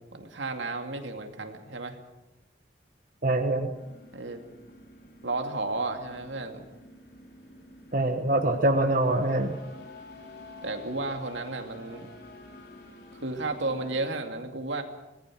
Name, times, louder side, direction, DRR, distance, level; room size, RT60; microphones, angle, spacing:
voice 1, 0.0-2.0 4.1-4.4 5.2-6.6 10.6-12.1 13.1-14.8, right 2 dB, 80° right, 5 dB, 2.5 m, -33 dB
voice 2, 3.2-3.7 7.9-9.6, right 1 dB, 45° right, 5 dB, 1.4 m, -24 dB
sound 1, 3.7-14.0, left 1 dB, 55° left, 3.7 m, -48 dB
25.0 x 19.5 x 6.3 m, 1.0 s
head